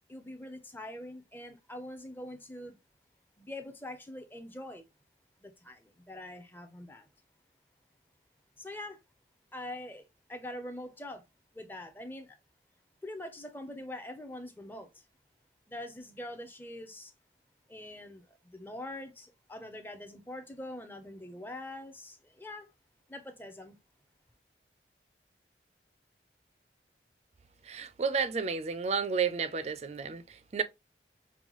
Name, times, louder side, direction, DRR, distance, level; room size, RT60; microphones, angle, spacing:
voice 1, 0.1-2.8 3.4-4.8 5.4-7.1 8.6-9.0 9.5-11.2 11.5-12.4 13.0-15.0 15.7-17.1 17.7-22.7 23.1-23.8, left 1 dB, 10° left, 0.6 m, -44 dB
voice 2, 27.7-30.6, right 5 dB, 35° right, 0.4 m, -31 dB
5.4 x 2.2 x 3.0 m
head